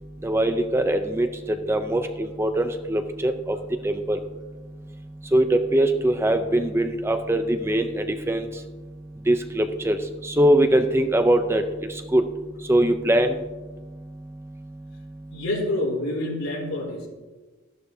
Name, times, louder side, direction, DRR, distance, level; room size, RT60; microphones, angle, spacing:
voice 1, 0.2-1.3 1.7-2.0 2.4-3.6 3.8-4.2 5.3-7.9 8.3-8.4 9.3-10.0 10.4-11.6 12.1-12.2 12.7-13.3, right 1 dB, 10° right, 7 dB, 0.5 m, -21 dB
voice 2, 15.3-17.1, left 1 dB, 80° left, -3 dB, 3.9 m, -27 dB
13.0 x 11.5 x 2.7 m, 1.2 s
head